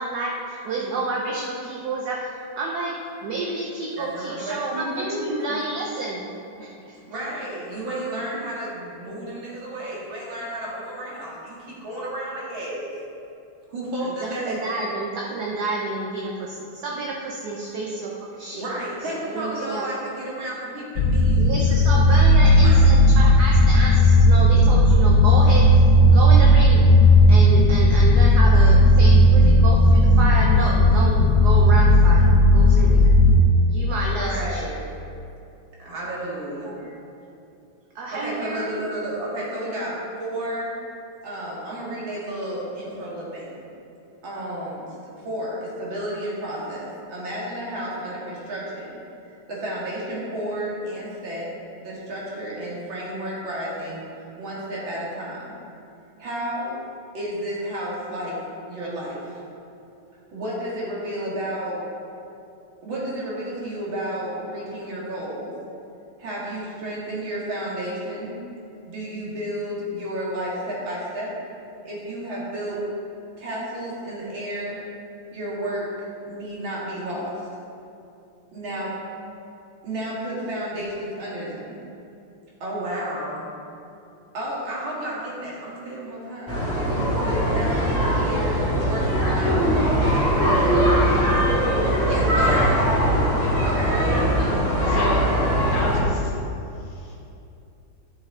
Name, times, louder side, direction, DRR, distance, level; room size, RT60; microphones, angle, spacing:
voice 1, 0.0-6.2 6.6-7.0 14.0-18.6 19.2-19.9 21.4-25.7 26.1-26.9 27.3-33.0 33.7-34.7 36.5-37.1 37.9-38.9, right 3 dB, 60° right, -2 dB, 1.2 m, -29 dB
voice 2, 4.0-5.7 6.8-12.9 13.7-14.6 18.5-22.0 22.3-22.8 34.1-34.8 35.8-36.8 38.1-40.7 41.2-43.6 44.2-44.8 45.2-48.9 49.5-51.5 51.8-54.0 54.4-55.5 56.2-56.8 57.1-58.4 58.7-59.4 60.3-61.8 62.8-65.5 66.2-68.4 68.9-71.3 71.8-72.8 73.4-74.8 75.3-75.9 76.3-77.4 78.5-79.0 79.8-81.8 82.6-83.5 84.3-90.2 90.5-93.2 93.6-94.5, right 1 dB, 80° right, -6 dB, 2.7 m, -32 dB
sound 1, 21.0-33.4, left 1 dB, 70° left, 0.8 m, -14 dB
sound 2, 86.5-96.0, equal, 5° right, 2.1 m, -21 dB
voice 3, 94.8-95.3 95.7-96.4 96.7-97.2, left 1 dB, 30° left, -5 dB, 1.4 m, -30 dB
11.5 x 6.4 x 3.8 m, 2.7 s
omnidirectional pair, 2.1 m